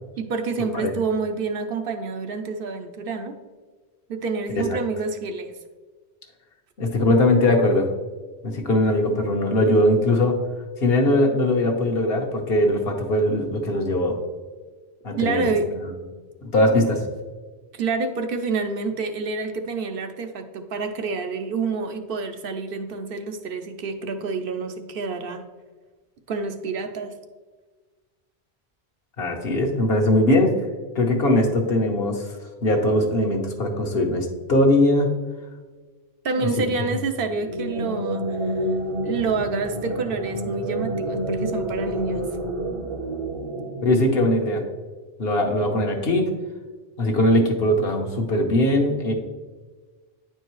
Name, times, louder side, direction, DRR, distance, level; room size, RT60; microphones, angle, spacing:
voice 1, 0.2-3.3 4.1-5.5 15.2-15.7 17.7-25.4 26.3-27.1 36.2-38.6 39.0-42.3, right 4 dB, 65° right, 7 dB, 0.8 m, -28 dB
voice 2, 6.8-7.9 8.4-10.4 10.8-14.2 15.0-15.5 16.4-17.0 29.2-30.6 30.9-32.3 32.6-35.1 36.4-36.5 36.8-36.9 43.8-44.6 45.2-46.3 47.0-49.1, left 1 dB, 70° left, 2 dB, 1.2 m, -20 dB
sound 1, 37.3-44.7, right 1 dB, 35° right, 0.6 m, -29 dB
9.5 x 4.5 x 3.0 m, 1.4 s
omnidirectional pair, 1.1 m